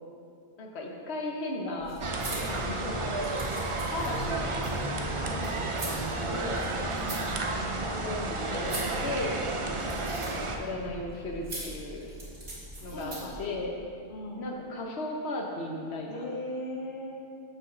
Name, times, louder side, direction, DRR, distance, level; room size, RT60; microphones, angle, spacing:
voice 1, 0.6-2.0 2.5-3.1 3.9-4.6 6.1-6.7 8.0-9.4 10.1-12.1 12.8-13.1 13.4-13.7 14.4-16.2, left 2 dB, 75° left, 0 dB, 1.2 m, -36 dB
sound 1, 1.8-13.4, right 1 dB, 60° right, 2.4 m, -42 dB
sound 2, 2.0-10.6, right 2 dB, 40° right, 0.4 m, -32 dB
voice 2, 5.1-5.5 6.9-7.3 12.9-13.7 14.1-14.5 16.1-17.2, left 1 dB, 55° left, 0 dB, 0.9 m, -39 dB
6.2 x 4.8 x 6.3 m, 2.3 s
omnidirectional pair, 1.1 m